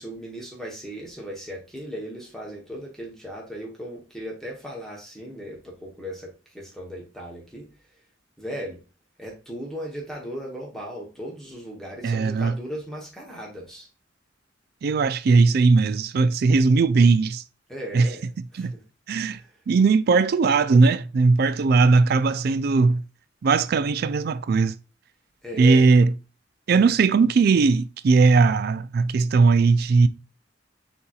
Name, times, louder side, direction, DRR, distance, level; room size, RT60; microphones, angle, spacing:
voice 1, 0.0-7.7 8.4-8.8 9.2-13.9 17.7-18.8 19.3-19.6 25.4-25.9, equal, ahead, 0.9 m, -37 dB
voice 2, 12.0-12.5 14.8-17.4 17.9-18.1 18.6-18.7 19.1-19.4 19.7-23.0 23.4-24.8 25.6-26.1 26.7-30.1, right 4 dB, 55° right, 0.3 m, -19 dB
6.7 x 2.8 x 2.3 m
head